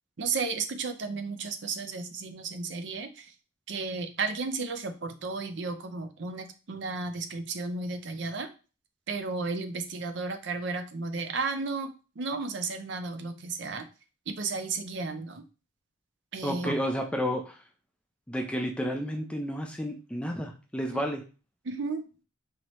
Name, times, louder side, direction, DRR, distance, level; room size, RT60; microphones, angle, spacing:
voice 1, 0.2-3.3 3.7-8.5 9.1-13.9 14.3-15.4 16.3-16.8 21.6-22.0, right 4 dB, 60° right, 7 dB, 0.5 m, -33 dB
voice 2, 16.4-17.6 18.3-21.2, equal, 5° left, 3 dB, 0.4 m, -31 dB
4.7 x 2.8 x 3.0 m, 0.34 s
head